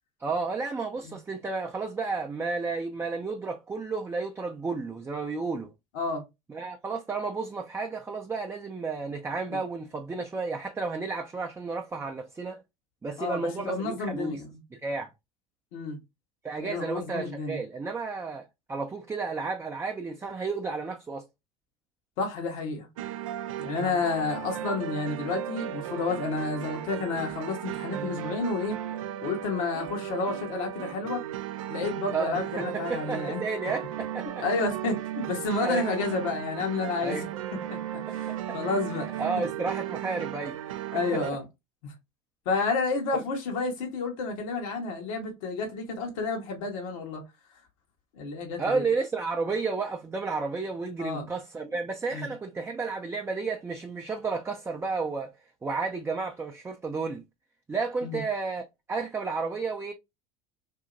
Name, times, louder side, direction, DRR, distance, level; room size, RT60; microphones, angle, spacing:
voice 1, 0.2-5.7 6.5-12.6 13.0-14.4 14.7-15.1 16.4-21.2 32.1-34.4 35.6-35.9 37.0-37.3 38.1-38.6 39.2-40.8 41.1-41.2 42.6-42.7 43.1-43.2 48.6-55.3 55.6-57.2 57.7-59.9, right 4 dB, 15° right, 0.4 m, -32 dB
voice 2, 13.2-14.5 15.7-16.0 16.6-17.6 22.2-22.9 23.6-28.8 29.2-31.2 31.7-33.4 34.4-37.2 37.7-37.8 38.1-39.2 40.9-41.4 41.8-41.9 42.4-47.2 48.1-48.8 51.0-51.2 52.1-52.3 58.0-58.2, left 4 dB, 70° left, 1.1 m, -30 dB
sound 1, 23.0-41.3, right 11 dB, 80° right, 0.4 m, -36 dB
2.8 x 2.7 x 2.5 m
hypercardioid pair, 80°, 17 cm